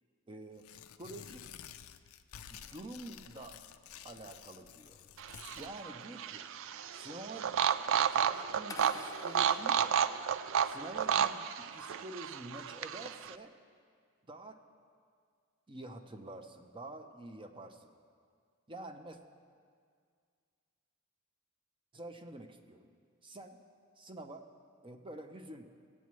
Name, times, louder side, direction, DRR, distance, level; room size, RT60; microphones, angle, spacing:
voice 1, 0.3-0.7 1.0-1.5 2.5-3.6 4.0-5.0 5.5-6.4 6.9-7.6 8.1-10.0 10.6-13.5 14.3-14.6 15.7-17.9 18.7-19.2 21.9-22.9 23.2-23.6 24.0-24.4 24.8-25.6, right 1 dB, 25° right, 6 dB, 0.7 m, -47 dB
Tearing, 0.5-5.7, left 9 dB, 80° left, 0.5 m, -51 dB
sound 1, 5.2-13.3, right 8 dB, 65° right, 0.4 m, -32 dB
sound 2, 8.7-10.8, left 4 dB, 15° left, 0.3 m, -50 dB
18.5 x 8.3 x 3.2 m, 2.1 s
head